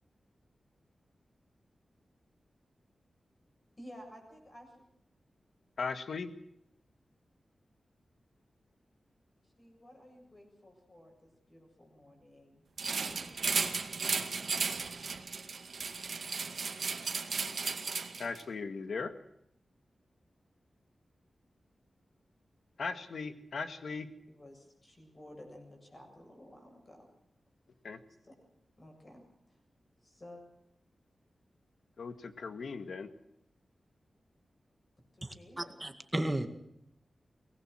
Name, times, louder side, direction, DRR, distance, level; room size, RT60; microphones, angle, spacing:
voice 1, 3.8-4.9 9.4-12.6 13.0-13.4 24.3-27.1 28.2-28.3 28.8-29.6 30.0-30.4 35.1-35.8, left 1 dB, 25° left, 2 dB, 7.5 m, -54 dB
voice 2, 5.8-6.3 18.2-19.1 22.8-24.1 27.8-28.0 32.0-33.1, left 4 dB, 70° left, 10 dB, 1.9 m, -38 dB
sound 1, 12.8-18.4, right 5 dB, 60° right, 1.9 m, -35 dB
voice 3, 35.2-36.5, right 1 dB, 15° right, 8 dB, 1.9 m, -34 dB
24.0 x 19.0 x 6.4 m, 0.75 s
wide cardioid pair, 155°, 0 cm